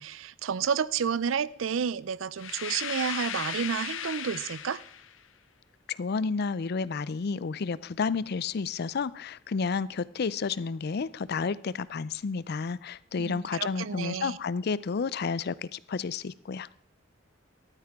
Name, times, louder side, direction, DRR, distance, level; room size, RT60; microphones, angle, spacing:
voice 1, 0.0-4.8 13.2-14.4, right 7 dB, 90° right, 19 dB, 0.5 m, -30 dB
sound 1, 2.4-5.2, left 9 dB, 80° left, 0.8 m, -36 dB
voice 2, 5.9-16.7, left 5 dB, 55° left, 20 dB, 0.4 m, -31 dB
14.0 x 12.5 x 3.6 m, 0.66 s
head